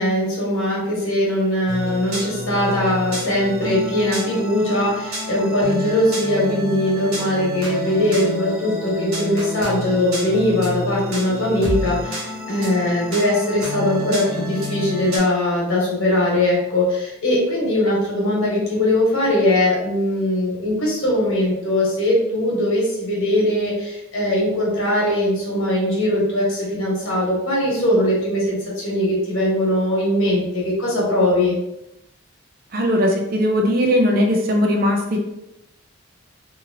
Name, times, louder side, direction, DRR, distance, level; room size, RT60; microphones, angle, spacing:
voice 1, 0.0-31.5, left 1 dB, 70° left, -5 dB, 1.2 m, -20 dB
sound 1, 1.7-15.2, left 1 dB, 85° right, 1.1 m, -29 dB
voice 2, 32.7-35.2, equal, 45° right, 2 dB, 0.4 m, -19 dB
2.9 x 2.7 x 2.6 m, 0.87 s
head